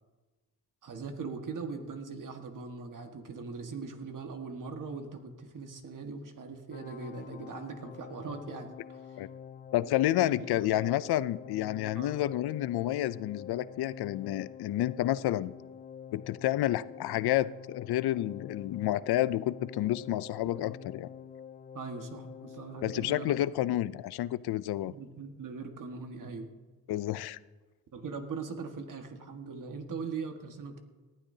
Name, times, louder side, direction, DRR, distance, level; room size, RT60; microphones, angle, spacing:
voice 1, 0.8-9.2 10.2-10.3 11.9-12.2 21.7-23.4 24.8-26.5 27.9-30.8, right 4 dB, 55° right, 5 dB, 1.6 m, -40 dB
sound 1, 6.7-23.5, left 7 dB, 25° left, 0.3 m, -47 dB
voice 2, 9.7-15.5 16.1-21.1 22.8-24.9 26.9-27.4, left 14 dB, 80° left, 17 dB, 0.5 m, -30 dB
19.0 x 12.0 x 2.8 m, 1.3 s
cardioid pair, 100°, 38 cm